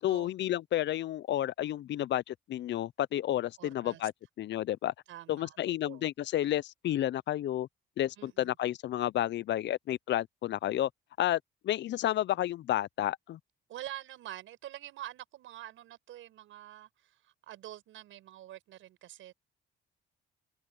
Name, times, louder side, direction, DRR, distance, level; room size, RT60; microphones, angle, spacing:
voice 1, 0.0-4.1 4.4-4.9 5.3-7.7 8.0-10.9 11.2-13.4, left 13 dB, 65° left, 0.5 m, -31 dB
voice 2, 3.6-4.0 5.1-5.6 5.8-6.1 8.2-8.6 13.7-19.3, right 13 dB, 85° right, 6.9 m, -46 dB
cardioid pair, 90°, 20 cm